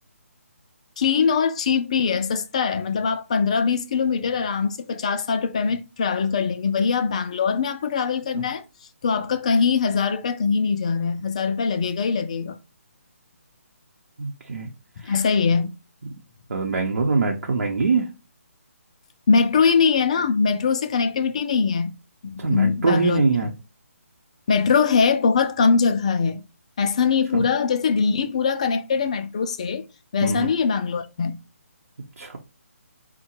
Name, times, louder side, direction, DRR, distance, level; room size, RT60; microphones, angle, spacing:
voice 1, 1.0-8.6 9.0-12.6 15.0-15.7 19.3-21.9 22.2-23.2 24.5-26.4 26.8-29.8 30.1-31.4, left 5 dB, 25° left, 0.3 m, -22 dB
voice 2, 14.2-14.7 15.0-15.2 16.5-18.1 22.4-23.5 27.3-27.4 30.2-30.5 32.2-32.4, right 4 dB, 75° right, 0.8 m, -23 dB
3.8 x 2.2 x 4.3 m
hypercardioid pair, 170°, 8 cm